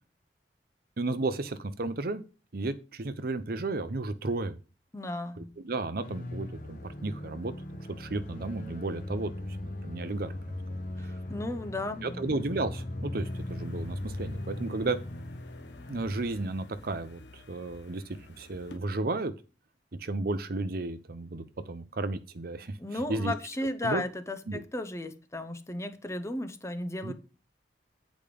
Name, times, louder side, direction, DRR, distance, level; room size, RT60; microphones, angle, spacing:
voice 1, 1.0-2.2 2.5-4.6 5.4-7.5 8.0-9.3 9.6-10.3 12.0-15.0 15.9-18.0 18.4-19.3 20.0-23.3 23.8-24.0 24.5-24.6 27.0-27.1, right 2 dB, 55° right, 0.7 m, -33 dB
voice 2, 4.9-5.5 11.3-12.2 22.8-27.1, left 1 dB, 15° left, 0.8 m, -34 dB
sound 1, 6.0-16.8, left 1 dB, 50° left, 0.9 m, -39 dB
sound 2, 13.2-18.8, left 2 dB, 75° left, 1.2 m, -51 dB
8.8 x 5.1 x 5.1 m
head